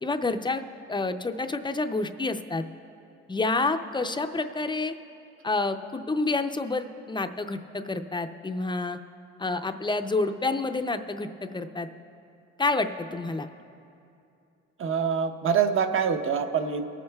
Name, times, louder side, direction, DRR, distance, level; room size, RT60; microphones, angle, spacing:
voice 1, 0.0-2.6 3.3-4.9 5.4-9.0 9.4-11.9 12.6-13.5, left 3 dB, 15° left, 8 dB, 0.5 m, -28 dB
voice 2, 14.8-16.9, right 7 dB, 45° right, 7 dB, 0.7 m, -25 dB
22.5 x 8.6 x 2.3 m, 2.6 s
cardioid pair, 90°, 30 cm